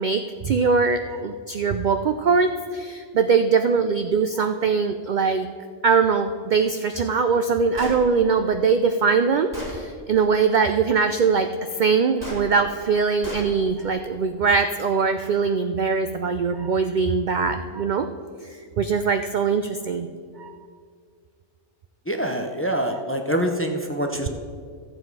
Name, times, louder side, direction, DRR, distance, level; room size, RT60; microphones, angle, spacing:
voice 1, 0.0-5.5 5.8-18.1 18.5-20.1 20.4-20.5, right 5 dB, 65° right, 8 dB, 0.4 m, -22 dB
Gunshot gunfire, 7.8-8.0 8.9-9.0 9.5-9.8 12.2-12.4 13.2-13.5, equal, 15° right, 2.4 m, -34 dB
voice 2, 22.1-24.3, equal, 15° left, 4 dB, 0.6 m, -25 dB
14.0 x 7.8 x 4.7 m, 2.1 s
omnidirectional pair, 1.3 m